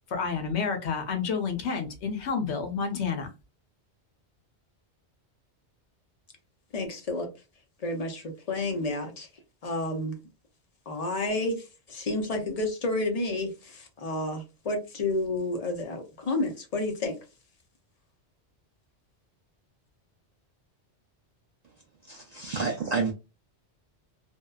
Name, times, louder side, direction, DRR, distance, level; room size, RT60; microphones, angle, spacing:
voice 1, 0.1-3.3, left 5 dB, 75° left, 1.0 m, -29 dB
voice 2, 6.7-7.3 7.8-9.3 9.6-10.2 10.9-17.2, left 2 dB, 45° left, 0.5 m, -30 dB
voice 3, 22.1-23.1, right 4 dB, 60° right, 0.4 m, -29 dB
2.7 x 2.2 x 2.2 m
omnidirectional pair, 1.1 m